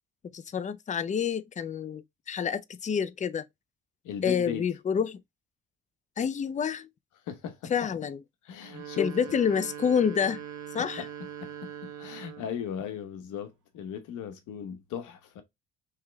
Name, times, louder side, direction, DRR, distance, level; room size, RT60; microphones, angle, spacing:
voice 1, 0.3-3.4 4.2-5.2 6.2-6.9 7.7-8.2 9.0-10.4 10.7-11.1, left 7 dB, 25° left, 0.4 m, -28 dB
voice 2, 4.0-4.6 7.3-7.7 8.4-9.1 11.0-11.1 11.4-15.4, left 8 dB, 85° left, 1.0 m, -37 dB
sound 1, 8.6-12.6, right 9 dB, 70° right, 1.0 m, -41 dB
3.4 x 3.1 x 3.3 m
cardioid pair, 90°, 30 cm